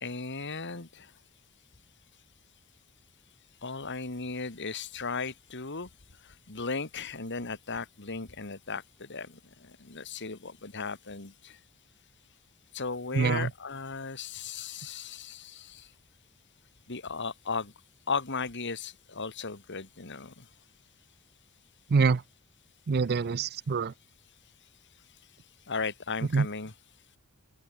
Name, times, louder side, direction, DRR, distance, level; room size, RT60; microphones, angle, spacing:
voice 1, 0.0-1.1 3.6-5.9 6.2-11.6 12.7-15.9 16.9-17.7 18.1-20.5 25.7-26.7, left 4 dB, 55° left, 2.3 m, -36 dB
voice 2, 13.1-13.5 21.9-22.2 22.9-23.9 26.3-26.5, right 5 dB, 45° right, 0.5 m, -25 dB
open air
head